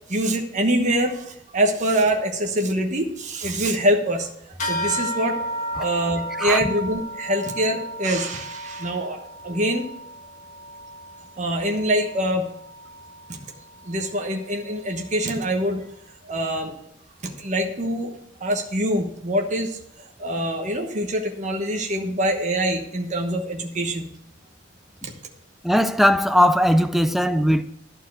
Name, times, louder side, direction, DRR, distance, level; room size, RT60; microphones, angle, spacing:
voice 1, 0.1-4.3 4.6-5.4 5.8-9.2 9.4-9.9 11.4-12.5 13.3-13.4 13.8-15.8 16.2-16.7 17.2-18.1 18.4-19.8 20.2-24.1 25.0-25.1, right 1 dB, 40° right, 1.1 m, -24 dB
sound 1, 4.6-14.4, equal, 40° left, 1.8 m, -34 dB
voice 2, 6.3-6.6 25.6-27.6, equal, ahead, 0.4 m, -19 dB
12.0 x 4.6 x 7.7 m
head